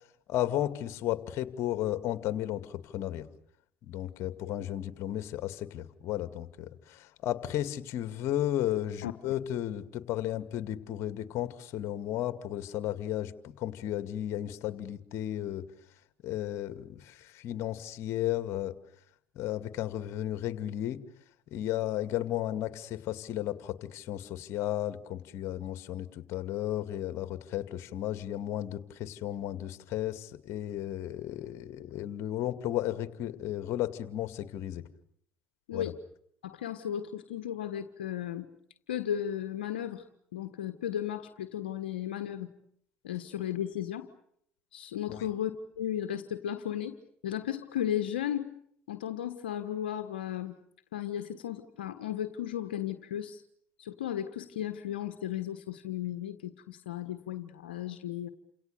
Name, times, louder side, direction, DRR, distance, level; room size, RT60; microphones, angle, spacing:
voice 1, 0.3-3.3 3.8-15.6 16.2-18.7 19.4-21.0 21.5-34.8 35.7-35.9 45.1-45.2, left 12 dB, 60° left, 11 dB, 2.3 m, -34 dB
voice 2, 35.7-36.0 36.4-38.5 38.9-40.0 40.3-42.5 43.0-44.1 44.7-46.9 47.2-48.5 48.9-50.6 50.9-53.4 53.8-58.3, left 10 dB, 85° left, 9 dB, 1.5 m, -35 dB
30.0 x 27.5 x 6.8 m, 0.69 s
hypercardioid pair, 60°, 5 cm